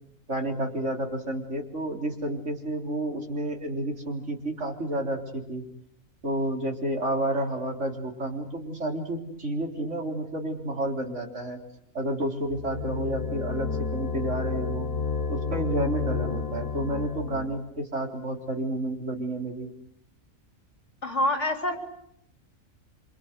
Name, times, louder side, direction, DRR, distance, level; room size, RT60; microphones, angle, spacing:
voice 1, 0.3-5.6 6.2-11.6 11.9-14.9 15.3-19.7, right 1 dB, 60° right, 3 dB, 4.3 m, -30 dB
sound 1, 12.4-17.6, left 5 dB, 85° left, 2.0 m, -31 dB
voice 2, 21.0-21.8, left 1 dB, 60° left, 5 dB, 4.3 m, -26 dB
28.0 x 26.0 x 8.1 m, 0.73 s
omnidirectional pair, 1.4 m